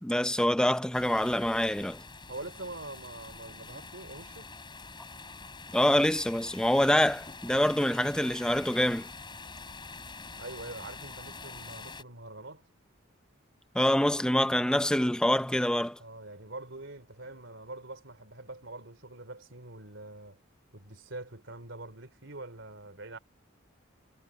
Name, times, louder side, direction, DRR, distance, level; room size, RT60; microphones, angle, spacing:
voice 1, 0.0-2.0 5.7-9.1 13.7-16.0, left 1 dB, 5° left, 0.6 m, -26 dB
sound 1, 0.9-12.0, left 4 dB, 25° left, 5.8 m, -46 dB
voice 2, 2.3-4.5 10.4-12.7 16.0-20.4 20.7-23.2, right 2 dB, 65° right, 3.8 m, -44 dB
head